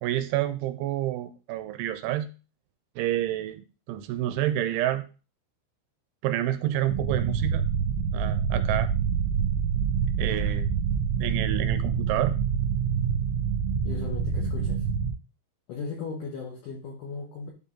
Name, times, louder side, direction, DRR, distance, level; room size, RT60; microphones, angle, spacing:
voice 1, 0.0-2.3 3.0-5.1 6.2-7.6 8.1-8.9 10.2-10.7 11.2-12.4, right 13 dB, 85° right, 11 dB, 2.9 m, -29 dB
sound 1, 6.9-15.1, right 7 dB, 60° right, 3.2 m, -26 dB
voice 2, 13.8-14.9 15.7-17.5, left 4 dB, 75° left, 0 dB, 1.9 m, -37 dB
11.5 x 4.1 x 3.8 m, 0.33 s
omnidirectional pair, 5.5 m